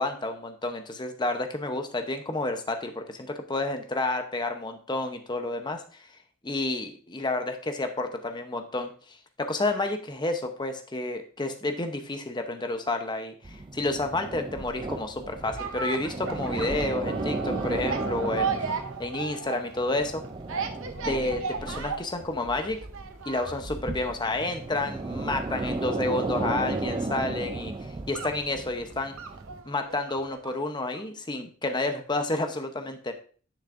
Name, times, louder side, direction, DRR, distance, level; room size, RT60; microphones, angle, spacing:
voice 1, 0.0-6.1 6.4-20.2 21.1-22.8 23.3-29.1 29.7-33.1, left 2 dB, 20° left, 6 dB, 0.8 m, -30 dB
sound 1, 13.4-29.6, right 2 dB, 20° right, 0.4 m, -35 dB
sound 2, 15.4-30.6 30.9-31.0, right 5 dB, 65° right, 0.8 m, -36 dB
10.0 x 6.3 x 2.6 m, 0.41 s
head